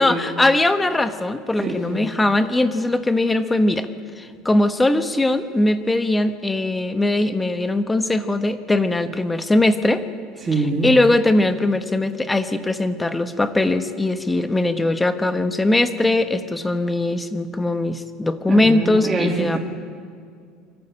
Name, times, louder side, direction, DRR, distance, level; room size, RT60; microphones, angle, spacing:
voice 1, 0.0-3.9 4.2-10.0 10.8-19.6, left 2 dB, 10° left, 9 dB, 1.1 m, -20 dB
voice 2, 1.6-2.1 10.4-10.9 18.5-19.6, right 2 dB, 20° right, -2 dB, 2.3 m, -24 dB
24.5 x 14.5 x 8.8 m, 2.2 s
cardioid pair, 135°, 0 cm